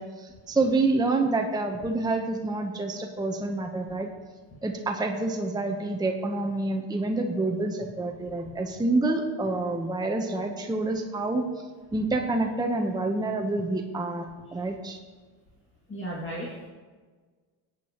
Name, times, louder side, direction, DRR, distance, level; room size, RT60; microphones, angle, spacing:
voice 1, 0.0-4.1 4.6-11.4 11.9-15.0, right 2 dB, 10° right, 3 dB, 0.9 m, -27 dB
voice 2, 15.9-16.7, right 1 dB, 25° left, -5 dB, 2.2 m, -35 dB
17.5 x 8.3 x 3.0 m, 1.4 s
supercardioid pair, 95°, 49 cm